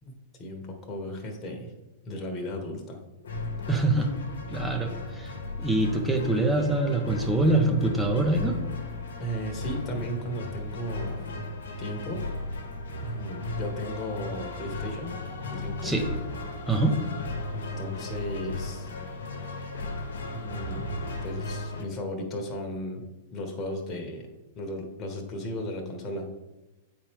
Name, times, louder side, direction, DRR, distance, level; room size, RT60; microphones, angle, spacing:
voice 1, 0.0-1.7 2.0-3.0 9.2-11.2 11.8-12.2 13.0-15.2 15.5-15.9 17.5-18.9 20.3-23.0 23.3-24.3 24.6-26.3, equal, 30° left, 1 dB, 1.5 m, -35 dB
sound 1, 3.2-21.8, left 2 dB, 75° left, 1.3 m, -36 dB
voice 2, 3.7-4.1 4.5-5.3 5.6-8.6 15.8-16.0 16.7-17.0, right 2 dB, 5° right, 3 dB, 1.2 m, -24 dB
8.5 x 4.5 x 3.6 m, 1.0 s
hypercardioid pair, 105°, 0 cm